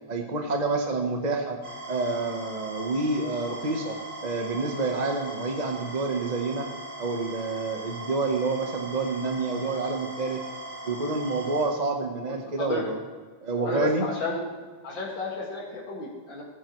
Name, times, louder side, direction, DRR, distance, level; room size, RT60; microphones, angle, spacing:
voice 1, 0.1-1.6 1.9-4.0 4.2-6.7 7.0-10.4 10.8-13.0 13.4-14.1, right 3 dB, 30° right, 3 dB, 0.8 m, -28 dB
sound 1, 1.6-11.7, right 1 dB, 70° right, 2.9 m, -39 dB
voice 2, 12.3-12.8 13.6-14.4 14.8-16.4, left 3 dB, 85° left, -4 dB, 2.8 m, -32 dB
19.0 x 10.0 x 3.1 m, 1.4 s
omnidirectional pair, 2.0 m